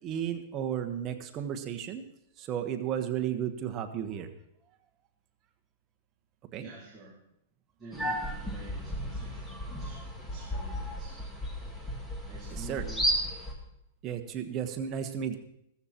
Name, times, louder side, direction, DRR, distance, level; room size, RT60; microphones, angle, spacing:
voice 1, 0.0-2.0 2.4-4.3 6.5-6.7 12.7-12.8 14.0-15.4, right 9 dB, 25° right, 6 dB, 1.3 m, -33 dB
voice 2, 6.6-7.1 7.8-11.2 12.2-13.1, right 2 dB, 10° right, -8 dB, 4.0 m, -49 dB
sound 1, 7.9-13.5, equal, 5° left, 2.2 m, -34 dB
15.5 x 14.0 x 4.5 m, 0.78 s
hypercardioid pair, 150°, 0 cm